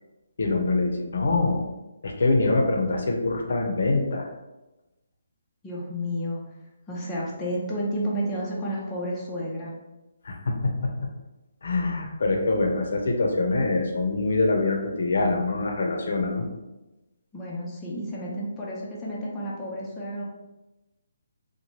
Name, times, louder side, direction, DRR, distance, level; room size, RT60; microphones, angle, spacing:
voice 1, 0.4-1.6 2.0-4.3 10.2-10.5 10.8-10.9 11.6-16.4, left 3 dB, 65° left, 2 dB, 0.5 m, -24 dB
voice 2, 5.6-6.4 6.9-9.7 17.3-20.2, equal, 10° left, -7 dB, 0.4 m, -31 dB
3.0 x 2.2 x 2.8 m, 1.0 s
hypercardioid pair, 170°, 0 cm